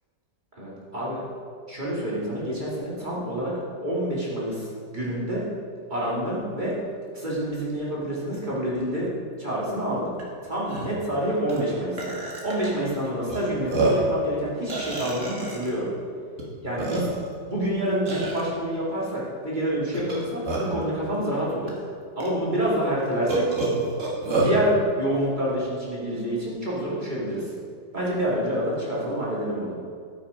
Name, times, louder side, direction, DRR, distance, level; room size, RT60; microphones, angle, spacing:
voice 1, 0.6-1.2 1.7-3.5 3.8-5.4 5.9-6.8 7.1-9.1 9.4-10.1 10.4-12.2 12.4-15.9 16.6-17.1 17.5-21.7 22.2-23.5 24.4-27.5 27.9-29.8, right 1 dB, 25° right, -6 dB, 2.6 m, -27 dB
Burping eructation, 10.2-10.3 10.7-10.9 11.5-11.6 12.0-12.7 13.3-13.4 13.7-14.1 14.7-15.7 16.4-16.5 16.8-17.3 18.1-18.4 19.9-20.8 21.7-21.8 22.2-22.3 23.3-24.6, right 2 dB, 45° right, 2.2 m, -27 dB
13.5 x 7.1 x 5.1 m, 2.2 s
omnidirectional pair, 1.9 m